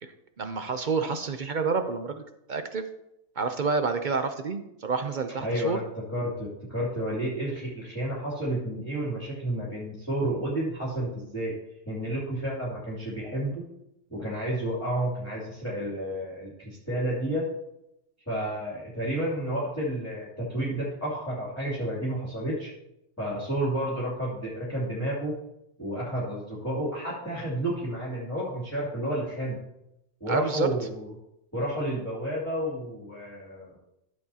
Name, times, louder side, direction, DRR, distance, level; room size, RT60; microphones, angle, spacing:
voice 1, 0.0-2.9 3.4-5.8 30.3-30.7, right 4 dB, 50° right, 7 dB, 0.6 m, -29 dB
voice 2, 5.4-5.8 6.1-11.6 11.9-13.7 14.1-17.5 18.3-22.7 23.2-25.3 25.8-29.6 30.2-31.1 31.5-33.8, right 1 dB, 10° left, -8 dB, 2.6 m, -31 dB
13.0 x 7.6 x 2.9 m, 0.83 s
omnidirectional pair, 1.4 m